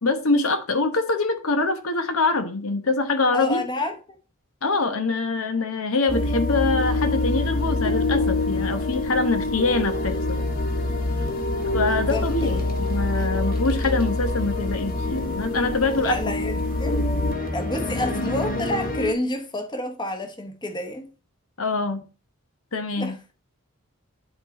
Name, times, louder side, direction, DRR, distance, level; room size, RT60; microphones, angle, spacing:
voice 1, 0.0-3.6 4.6-10.4 11.7-16.2 21.6-22.0 22.7-23.1, left 3 dB, 70° left, 1.1 m, -24 dB
voice 2, 3.3-4.0 11.8-12.6 16.0-17.0 17.5-21.1 23.0-23.1, left 1 dB, 20° left, 1.1 m, -29 dB
sound 1, 6.1-19.1, left 2 dB, 45° left, 1.5 m, -25 dB
11.0 x 4.0 x 4.2 m
head